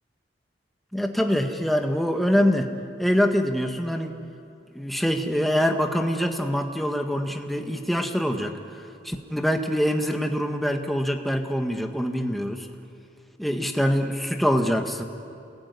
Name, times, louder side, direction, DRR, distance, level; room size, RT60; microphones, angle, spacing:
voice 1, 0.9-2.7 3.0-4.2 4.7-12.7 13.4-15.0, equal, ahead, 4 dB, 1.6 m, -24 dB
28.5 x 21.0 x 9.6 m, 2.6 s
head